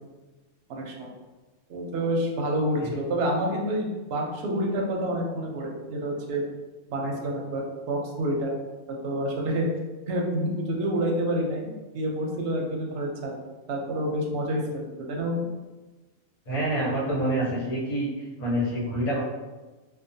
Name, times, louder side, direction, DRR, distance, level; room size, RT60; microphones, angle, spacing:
voice 1, 0.7-1.1 1.7-6.4 6.9-8.5 9.0-9.7 10.1-13.4 13.7-15.5, right 1 dB, 60° right, -1 dB, 0.7 m, -28 dB
voice 2, 16.5-18.1 18.4-19.2, right 1 dB, 80° left, -6 dB, 1.4 m, -27 dB
3.0 x 2.1 x 2.6 m, 1.2 s
omnidirectional pair, 1.4 m